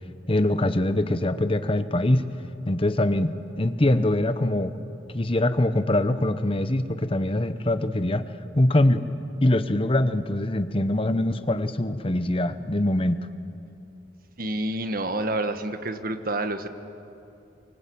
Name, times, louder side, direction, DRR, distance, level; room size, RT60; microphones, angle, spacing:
voice 1, 0.3-2.2 2.7-4.8 5.1-8.2 8.5-9.0 9.4-13.2, left 1 dB, 30° left, 11 dB, 1.0 m, -23 dB
voice 2, 14.4-16.7, right 2 dB, 50° right, 8 dB, 1.4 m, -28 dB
24.0 x 23.5 x 8.7 m, 2.7 s
head